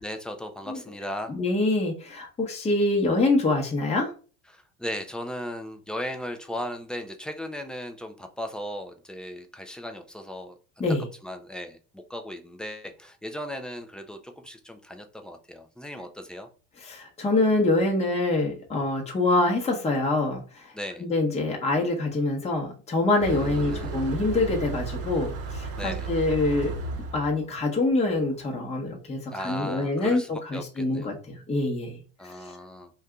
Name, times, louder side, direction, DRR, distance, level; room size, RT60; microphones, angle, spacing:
voice 1, 0.0-1.4 4.5-10.8 11.2-16.5 20.7-21.1 23.2-24.1 25.8-26.1 29.3-31.2 32.2-32.9, equal, ahead, 5 dB, 0.3 m, -37 dB
voice 2, 1.3-4.1 10.8-11.1 16.8-20.7 21.0-26.7 27.1-32.0, left 2 dB, 20° left, 0 dB, 0.9 m, -25 dB
Motor vehicle (road), 23.2-28.4, right 4 dB, 40° right, 0.8 m, -34 dB
2.6 x 2.3 x 3.5 m, 0.37 s
hypercardioid pair, 85°, 36 cm